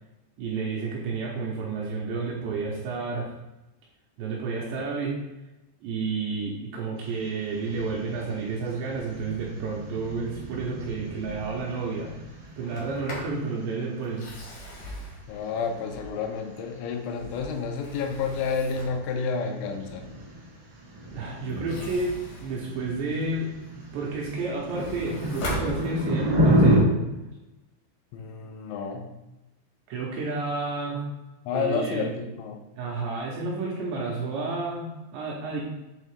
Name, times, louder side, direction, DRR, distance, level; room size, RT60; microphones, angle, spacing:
voice 1, 0.4-3.3 4.2-5.2 5.8-12.1 12.6-14.2 14.6-14.8 21.1-26.9 29.9-31.0 31.5-32.1 32.8-35.6, right 3 dB, 80° right, -3 dB, 2.7 m, -31 dB
sound 1, 7.0-26.8, equal, 55° right, 1.2 m, -31 dB
Sliding door, 12.6-13.4 14.0-16.4 16.9-19.1 21.5-23.4 23.9-26.4, equal, 70° left, 1.7 m, -39 dB
voice 2, 15.3-20.0 28.1-29.1 31.5-32.6, left 5 dB, 85° left, 4 dB, 3.4 m, -30 dB
8.3 x 3.6 x 3.5 m, 1.0 s
omnidirectional pair, 5.8 m